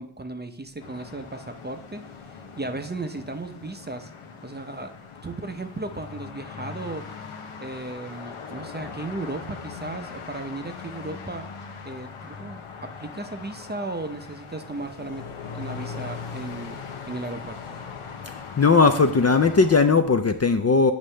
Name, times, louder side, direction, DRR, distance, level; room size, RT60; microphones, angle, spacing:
voice 1, 0.0-4.1 4.4-4.9 5.2-7.0 7.6-11.5 11.8-15.2 15.5-16.7 17.1-17.8, right 2 dB, 20° right, 7 dB, 0.6 m, -35 dB
sound 1, 0.8-19.8, left 5 dB, 85° left, 0.8 m, -40 dB
voice 2, 18.3-20.9, left 4 dB, 35° left, 7 dB, 0.5 m, -18 dB
8.2 x 5.1 x 3.3 m, 0.70 s
cardioid pair, 45°, 49 cm